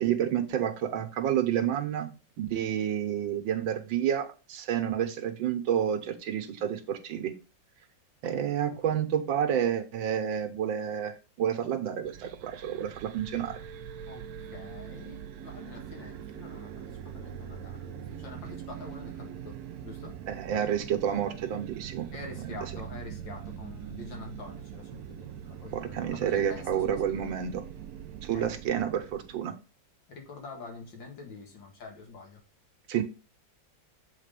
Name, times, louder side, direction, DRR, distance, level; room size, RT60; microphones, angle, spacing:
voice 1, 0.0-2.1 2.4-7.4 8.2-13.6 20.3-22.1 22.5-22.6 25.7-27.6 28.2-29.6 32.9-33.0, right 9 dB, 85° right, 8 dB, 1.7 m, -29 dB
sound 1, 12.0-29.5, right 9 dB, 65° right, 1.0 m, -42 dB
voice 2, 14.5-20.2 22.1-27.3 28.3-28.5 30.1-32.4, left 3 dB, 75° left, 2 dB, 2.6 m, -46 dB
7.4 x 4.1 x 5.2 m, 0.32 s
omnidirectional pair, 2.0 m